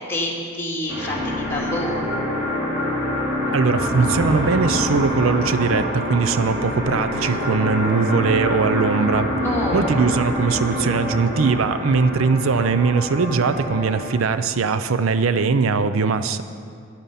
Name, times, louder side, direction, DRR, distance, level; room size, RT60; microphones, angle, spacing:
voice 1, 0.0-2.0 9.4-9.9, left 1 dB, 10° left, -4 dB, 2.4 m, -27 dB
sound 1, 0.9-14.2, left 1 dB, 20° right, 4.0 m, -25 dB
voice 2, 3.5-9.3 9.7-16.4, right 4 dB, 80° right, 11 dB, 0.5 m, -20 dB
13.5 x 10.5 x 5.7 m, 2.2 s
head